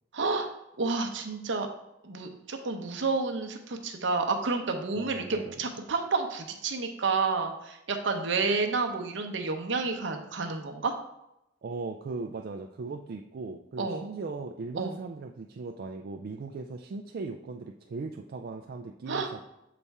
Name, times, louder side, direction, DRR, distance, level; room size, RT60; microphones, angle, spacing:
voice 1, 0.1-0.5 0.8-1.7 2.0-10.9 13.8-14.0 14.8-15.0 19.1-19.3, right 4 dB, 70° right, 4 dB, 0.7 m, -30 dB
voice 2, 4.9-5.5 11.6-19.4, right 3 dB, 55° right, 3 dB, 0.3 m, -38 dB
6.8 x 4.1 x 3.5 m, 0.85 s
head